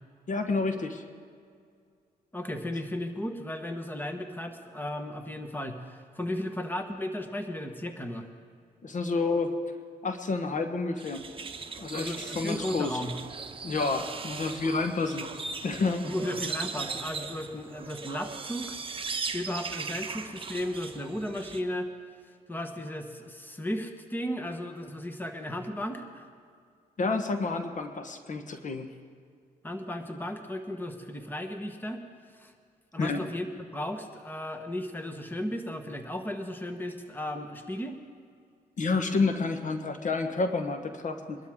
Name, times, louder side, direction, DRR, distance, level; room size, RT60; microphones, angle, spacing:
voice 1, 0.3-1.0 8.8-9.5 10.0-11.2 11.8-13.0 13.6-15.3 15.6-16.0 27.0-28.9 33.0-33.2 38.8-41.4, left 3 dB, 50° left, 6 dB, 1.2 m, -29 dB
voice 2, 2.3-8.3 11.9-13.2 16.0-18.7 19.3-21.9 22.5-26.3 29.6-32.0 32.3-32.5 32.9-38.0, left 1 dB, 10° left, 6 dB, 1.3 m, -35 dB
sound 1, 11.0-21.6, right 5 dB, 35° right, 0.9 m, -38 dB
22.5 x 12.5 x 3.7 m, 2.2 s
cardioid pair, 90°, 16 cm